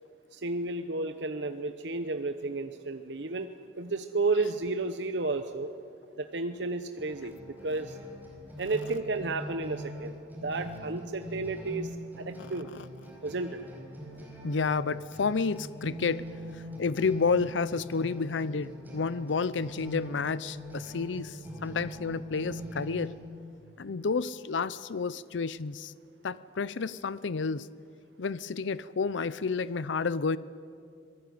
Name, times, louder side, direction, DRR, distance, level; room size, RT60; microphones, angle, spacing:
voice 1, 0.3-3.5 3.8-5.7 6.2-7.3 7.6-8.0 8.6-10.1 10.4-12.7 13.2-13.6, right 3 dB, 70° right, 8 dB, 0.9 m, -32 dB
sound 1, 7.0-23.1, equal, 10° right, 5.1 m, -42 dB
voice 2, 12.4-12.9 14.4-16.3 16.5-23.1 23.8-25.9 26.2-27.7 28.2-30.4, left 4 dB, 85° left, 17 dB, 0.6 m, -30 dB
26.0 x 19.0 x 9.4 m, 2.3 s
head